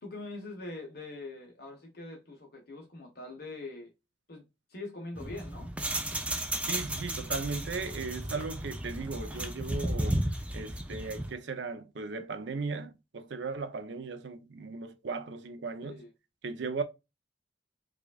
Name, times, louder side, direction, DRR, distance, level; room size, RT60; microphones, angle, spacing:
voice 1, 0.0-3.9 4.3-4.4 4.7-5.7 15.8-16.1, left 2 dB, 55° left, 1.0 m, -43 dB
sound 1, 5.2-11.3, right 1 dB, 5° right, 0.4 m, -34 dB
voice 2, 6.3-16.0 16.4-16.8, right 4 dB, 70° right, 0.6 m, -37 dB
4.8 x 2.4 x 2.3 m
head